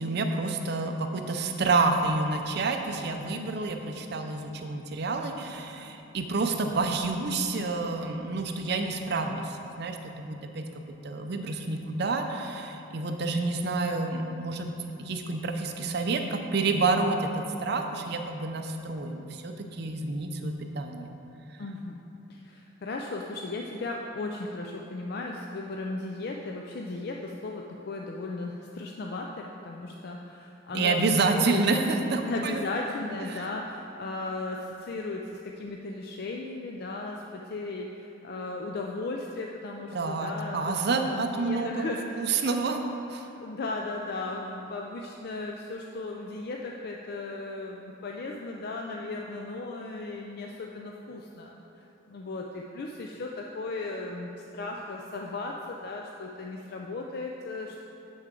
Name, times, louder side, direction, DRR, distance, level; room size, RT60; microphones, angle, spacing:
voice 1, 0.0-10.7 11.0-14.7 15.0-21.1 30.7-32.6 33.2-33.4 39.9-42.8 43.1-43.3, right 3 dB, 55° right, 5 dB, 0.5 m, -29 dB
voice 2, 21.6-22.0 22.3-31.0 31.3-31.9 32.3-42.3 43.3-51.5 52.1-57.8, left 2 dB, 50° left, 0 dB, 0.4 m, -36 dB
7.0 x 6.4 x 3.8 m, 2.9 s
head